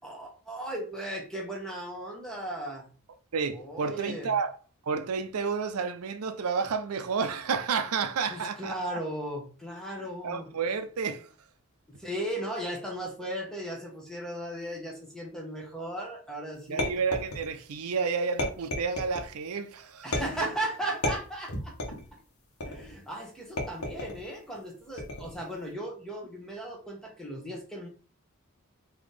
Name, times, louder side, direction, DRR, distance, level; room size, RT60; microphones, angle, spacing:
voice 1, 0.0-2.9 3.5-4.4 8.3-10.5 11.9-16.9 20.0-21.9 22.6-27.9, right 1 dB, 5° left, 0.9 m, -36 dB
voice 2, 3.3-4.5 4.8-8.7 10.2-11.3 16.7-20.1 20.4-20.5, right 5 dB, 90° right, 0.5 m, -30 dB
sound 1, 16.8-17.7 18.4-19.3 20.1-20.6 21.0-22.1 22.6-23.0 23.6-24.2 25.0-25.4, left 1 dB, 85° left, 1.1 m, -33 dB
4.0 x 2.8 x 3.2 m
head